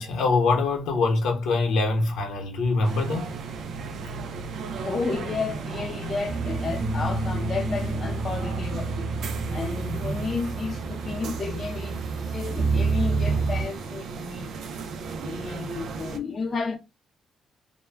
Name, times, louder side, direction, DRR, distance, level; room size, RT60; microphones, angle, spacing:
voice 1, 0.0-3.3, left 3 dB, 80° left, 0.9 m, -24 dB
sound 1, 2.8-16.2, right 4 dB, 70° right, 0.5 m, -35 dB
voice 2, 4.8-9.0 9.5-14.5 15.1-16.8, left 4 dB, 40° left, 0.6 m, -32 dB
sound 2, 6.3-13.6, right 3 dB, 25° right, 0.9 m, -29 dB
2.2 x 2.2 x 3.3 m
cardioid pair, 90°, 0 cm